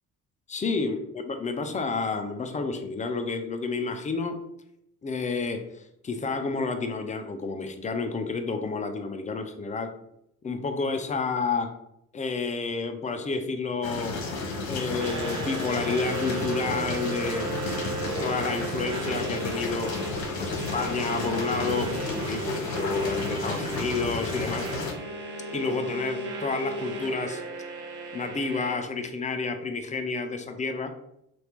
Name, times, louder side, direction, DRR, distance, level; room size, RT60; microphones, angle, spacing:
voice 1, 0.5-4.4 5.0-5.7 6.0-9.9 10.4-11.7 12.1-14.2 14.7-17.5 18.2-19.9 20.4-24.7 25.5-27.4 28.1-30.9, left 4 dB, 20° left, 6 dB, 0.4 m, -30 dB
sound 1, 13.8-24.9, left 3 dB, 55° left, 1.0 m, -32 dB
sound 2, 15.0-28.7, right 3 dB, 70° right, 0.7 m, -35 dB
2.8 x 2.5 x 3.3 m, 0.79 s
hypercardioid pair, 55°, 42 cm